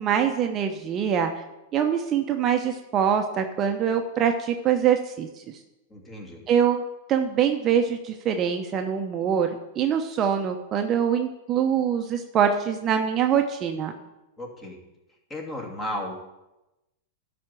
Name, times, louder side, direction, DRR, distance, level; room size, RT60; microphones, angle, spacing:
voice 1, 0.0-1.4 1.7-5.3 6.5-13.9, right 8 dB, 35° right, 4 dB, 0.8 m, -24 dB
voice 2, 5.9-6.4 14.4-14.8 15.3-16.1, left 1 dB, 20° left, 0 dB, 2.6 m, -34 dB
12.0 x 4.3 x 7.6 m, 0.97 s
hypercardioid pair, 110°, 0 cm